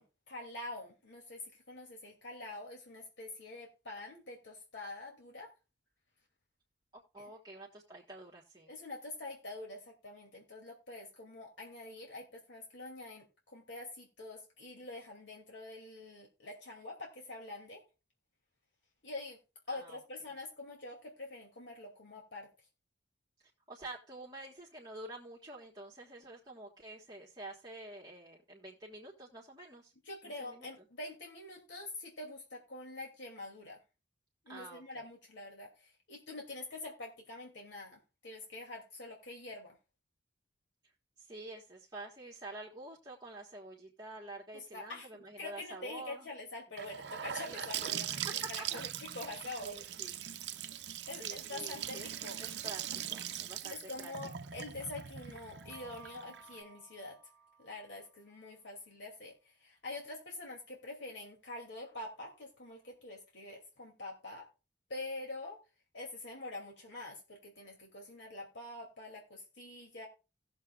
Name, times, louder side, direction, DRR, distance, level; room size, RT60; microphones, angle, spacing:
voice 1, 0.0-1.4 1.7-5.5 7.2-7.3 8.7-17.8 19.0-19.4 19.7-22.5 30.1-33.8 34.4-39.8 44.5-45.1 45.4-48.9 49.1-50.1 51.1-52.4 53.6-57.2 57.6-64.5 64.9-65.6 65.9-70.1, left 2 dB, 80° left, -1 dB, 2.5 m, -46 dB
voice 2, 6.9-8.7 19.7-20.0 23.7-29.9 30.2-30.7 34.5-35.0 41.2-46.3 48.1-48.7 49.6-50.2 51.2-54.1, right 2 dB, 25° right, -4 dB, 1.4 m, -48 dB
Gurgling / Sink (filling or washing) / Bathtub (filling or washing), 46.8-56.6, right 10 dB, 65° right, 0.6 m, -41 dB
sound 1, 55.5-58.2, right 4 dB, 5° left, 1.6 m, -58 dB
18.0 x 7.0 x 2.4 m, 0.30 s
head